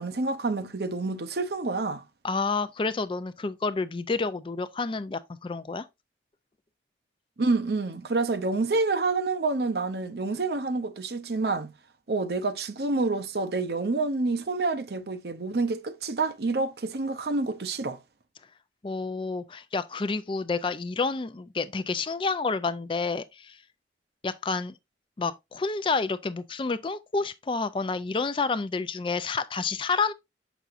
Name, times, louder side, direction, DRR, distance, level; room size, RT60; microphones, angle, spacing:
voice 1, 0.0-2.0 7.4-11.7 12.1-18.0, right 3 dB, 65° right, 0.7 m, -28 dB
voice 2, 2.2-5.9 18.8-23.6 24.2-24.7 25.2-30.1, left 4 dB, 30° left, 0.4 m, -29 dB
6.8 x 6.1 x 2.5 m
head